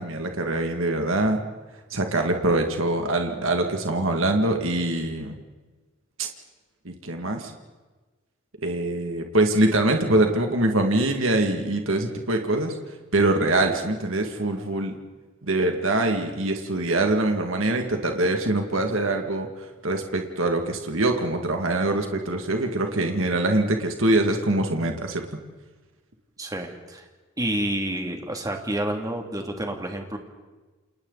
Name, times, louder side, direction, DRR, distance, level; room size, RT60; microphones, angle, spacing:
voice 1, 0.0-1.4 1.9-5.4 6.2-6.3 6.8-7.5 8.6-12.8 13.1-15.0 15.4-25.4, right 2 dB, 75° right, 4 dB, 2.2 m, -24 dB
voice 2, 26.4-27.1 27.4-30.2, right 1 dB, 15° right, 3 dB, 2.6 m, -29 dB
29.5 x 28.0 x 4.1 m, 1.3 s
head